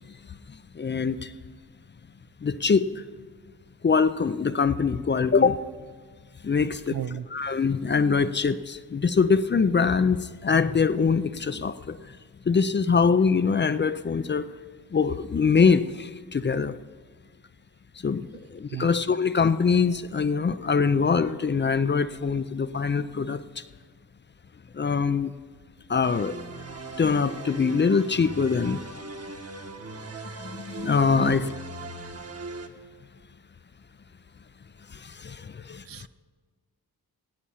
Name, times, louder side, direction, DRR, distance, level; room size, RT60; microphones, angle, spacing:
voice 1, 0.5-1.3 2.4-3.0 3.8-5.6 6.4-7.0 7.3-12.2 12.5-14.5 14.9-16.8 18.0-23.6 24.7-25.3 25.9-26.4 27.0-28.8 30.2-31.5 34.9-36.1, left 5 dB, 30° left, 13 dB, 0.5 m, -24 dB
voice 2, 6.9-7.3 18.7-18.9 31.1-31.5 35.9-36.1, right 10 dB, 60° right, 16 dB, 0.5 m, -34 dB
sound 1, 26.0-32.7, right 3 dB, 40° right, 1.3 m, -39 dB
17.0 x 8.6 x 5.7 m, 1.5 s
cardioid pair, 70°, 38 cm